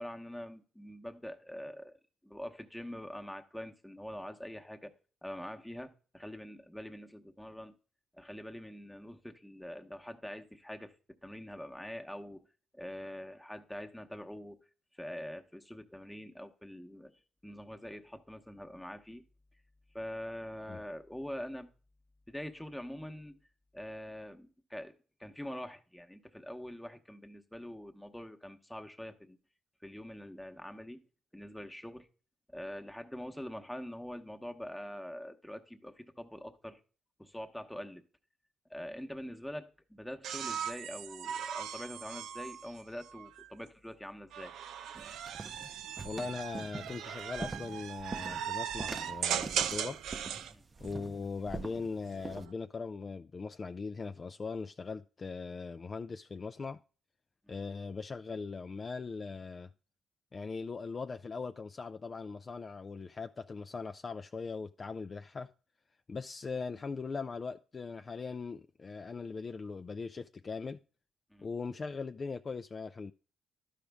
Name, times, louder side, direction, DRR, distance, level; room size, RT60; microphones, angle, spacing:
voice 1, 0.0-2.0 2.2-4.9 5.2-7.7 8.1-10.9 11.2-12.4 12.7-14.6 14.9-17.1 17.4-19.2 19.9-21.7 22.3-23.4 23.7-24.9 25.2-29.4 29.8-31.0 31.3-32.1 32.5-36.8 37.2-38.0 38.7-44.5 50.5-50.6 71.3-71.5, equal, 5° left, 0.9 m, -44 dB
sound 1, 40.2-43.5 44.3-50.5 52.0-52.5, right 9 dB, 80° right, 0.5 m, -38 dB
sound 2, 44.9-52.4, right 3 dB, 25° right, 0.6 m, -45 dB
voice 2, 46.0-50.0 50.8-56.8 57.5-59.7 60.3-65.5 66.1-70.8 71.4-73.1, left 4 dB, 35° left, 0.3 m, -40 dB
12.0 x 5.0 x 3.4 m
cardioid pair, 90°, 0 cm